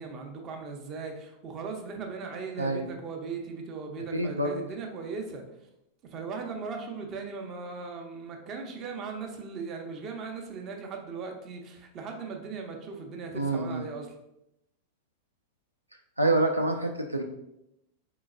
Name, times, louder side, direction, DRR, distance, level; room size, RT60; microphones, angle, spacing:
voice 1, 0.0-5.4 6.1-14.1, right 4 dB, 35° right, 3 dB, 0.7 m, -38 dB
voice 2, 4.1-4.5 13.3-13.9 16.2-17.2, right 2 dB, 85° right, 3 dB, 0.3 m, -26 dB
4.1 x 3.8 x 2.5 m, 0.85 s
figure-of-eight pair, 90°, 0 cm